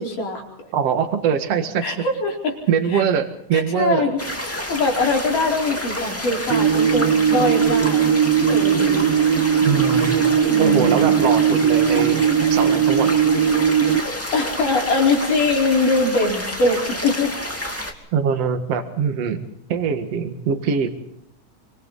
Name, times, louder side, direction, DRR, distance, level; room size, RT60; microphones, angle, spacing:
voice 1, 0.0-0.7 1.8-2.6 2.9-3.0 3.5-4.2 4.5-8.1 8.5-9.1 10.5-11.1 14.3-17.3, left 2 dB, 75° left, -1 dB, 6.1 m, -22 dB
voice 2, 0.7-1.9 2.7-4.1 9.6-10.2 10.6-12.2 12.5-13.1 18.1-20.9, right 7 dB, 55° right, 7 dB, 2.6 m, -22 dB
sound 1, 4.2-17.9, left 1 dB, 5° left, 1.8 m, -29 dB
sound 2, 6.5-14.0, right 8 dB, 90° right, 2.9 m, -18 dB
27.5 x 24.5 x 4.1 m, 0.75 s
omnidirectional pair, 3.8 m